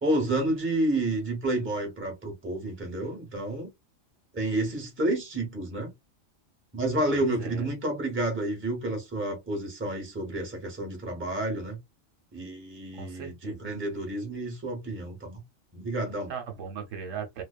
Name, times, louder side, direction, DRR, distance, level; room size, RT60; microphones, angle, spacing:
voice 1, 0.0-3.7 4.3-5.9 6.7-11.8 12.3-15.4 15.7-16.3, right 1 dB, 10° right, 0.8 m, -30 dB
voice 2, 7.1-7.6 13.0-13.8 16.3-17.4, right 7 dB, 75° right, 1.0 m, -38 dB
2.5 x 2.2 x 2.3 m
omnidirectional pair, 1.3 m